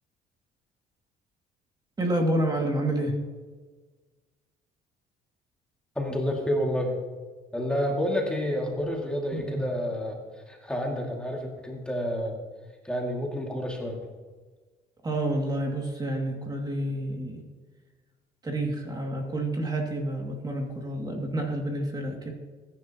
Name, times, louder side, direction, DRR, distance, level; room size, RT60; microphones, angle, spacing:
voice 1, 2.0-3.2 9.3-9.7 15.0-17.5 18.4-22.3, right 1 dB, 25° right, 1 dB, 2.3 m, -29 dB
voice 2, 6.0-7.0 7.5-10.2 10.5-12.4 12.8-14.0, equal, 5° left, -1 dB, 2.3 m, -29 dB
21.0 x 10.5 x 3.0 m, 1.4 s
cardioid pair, 110°, 17 cm